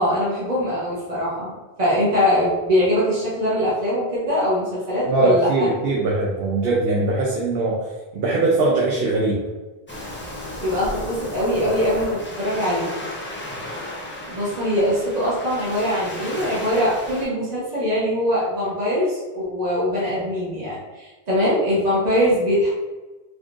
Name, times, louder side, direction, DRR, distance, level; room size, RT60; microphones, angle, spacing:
voice 1, 0.0-5.7 10.6-12.9 14.3-22.7, equal, 40° right, -9 dB, 1.1 m, -22 dB
voice 2, 5.1-7.8 8.1-9.4, right 2 dB, 70° right, -3 dB, 0.9 m, -21 dB
Waves surf, 9.9-17.3, left 1 dB, 15° left, 0.5 m, -34 dB
4.0 x 3.1 x 2.5 m, 1.2 s
omnidirectional pair, 1.0 m